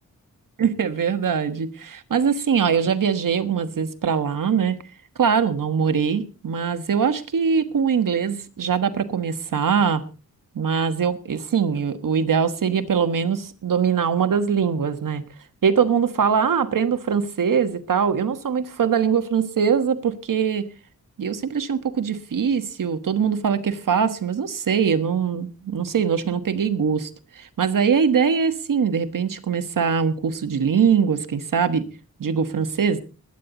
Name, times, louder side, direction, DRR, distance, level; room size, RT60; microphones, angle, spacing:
voice 1, 0.6-4.8 5.2-10.0 10.5-15.2 15.6-20.7 21.2-27.1 27.3-31.8 32.2-33.0, right 6 dB, 70° right, 10 dB, 1.4 m, -22 dB
21.0 x 9.7 x 4.0 m, 0.35 s
wide cardioid pair, 140°, 34 cm